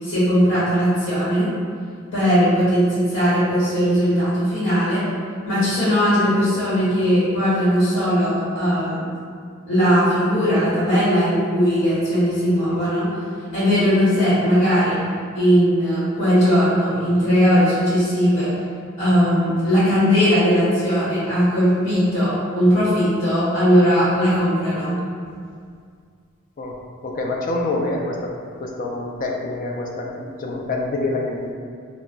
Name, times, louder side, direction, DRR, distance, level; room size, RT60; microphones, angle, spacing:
voice 1, 0.0-1.5 2.1-5.0 5.4-9.0 9.7-13.1 13.5-15.0 15.3-18.5 19.0-25.0, equal, 60° left, -12 dB, 1.0 m, -18 dB
voice 2, 27.0-28.3 28.6-31.5, left 2 dB, 40° left, 0 dB, 0.3 m, -26 dB
2.2 x 2.0 x 3.7 m, 2.1 s
head